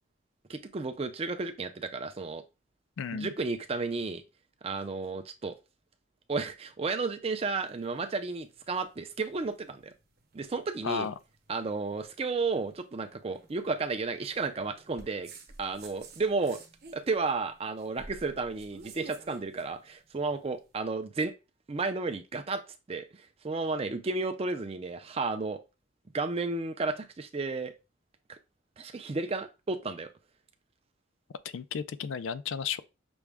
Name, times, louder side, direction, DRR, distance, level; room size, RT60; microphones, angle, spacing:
voice 1, 0.5-2.4 3.1-4.2 4.6-5.5 6.3-9.9 10.3-11.1 11.5-15.3 15.6-16.6 16.9-21.3 21.7-22.6 22.9-25.6 26.1-27.7 28.3-28.4 28.8-30.1, right 3 dB, 30° right, 0.4 m, -32 dB
voice 2, 3.0-3.3 10.8-11.1 31.4-32.8, left 7 dB, 70° left, 0.3 m, -33 dB
sound 1, 7.5-20.7, right 3 dB, 50° right, 0.9 m, -53 dB
6.0 x 2.2 x 3.4 m
head